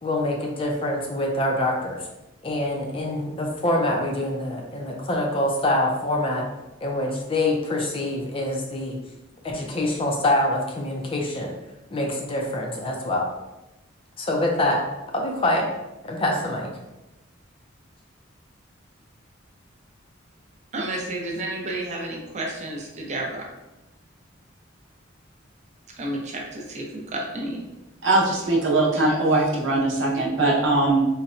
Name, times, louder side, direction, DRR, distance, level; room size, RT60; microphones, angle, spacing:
voice 1, 0.0-2.0 2.4-6.4 6.8-9.0 9.4-11.5 11.9-13.3 14.2-14.8 15.1-15.7 16.0-16.7, left 1 dB, 30° left, 0 dB, 0.5 m, -25 dB
voice 2, 20.7-23.5 25.9-27.6, right 1 dB, 35° right, 0 dB, 0.6 m, -31 dB
voice 3, 28.0-31.0, right 2 dB, 70° right, -4 dB, 0.8 m, -21 dB
4.0 x 2.2 x 2.5 m, 0.98 s
head